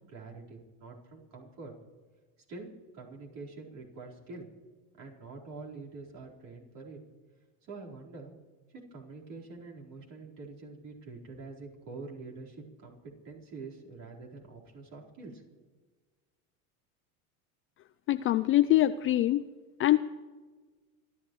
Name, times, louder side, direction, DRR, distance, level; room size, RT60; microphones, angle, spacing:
voice 1, 0.0-1.7 2.5-2.7 2.9-4.5 5.0-7.0 7.6-8.4 8.7-15.4, right 3 dB, 50° right, -3 dB, 4.5 m, -46 dB
voice 2, 18.1-19.5 19.8-20.0, left 14 dB, 30° left, 13 dB, 0.4 m, -24 dB
27.0 x 12.5 x 3.2 m, 1.4 s
hypercardioid pair, 95°, 42 cm